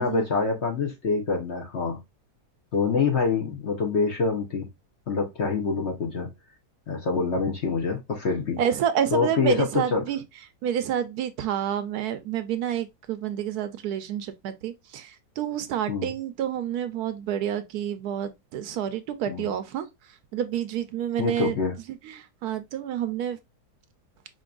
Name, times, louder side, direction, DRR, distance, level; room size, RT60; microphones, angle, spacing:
voice 1, 0.0-2.0 2.7-4.7 5.1-6.3 6.9-8.6 9.1-10.0 15.9-16.1 19.3-19.5 21.2-21.7, left 4 dB, 50° left, 1.0 m, -26 dB
voice 2, 8.6-10.2 10.6-19.9 20.3-21.6 21.9-23.4, right 9 dB, 75° right, 1.0 m, -29 dB
5.2 x 2.9 x 2.4 m
omnidirectional pair, 1.8 m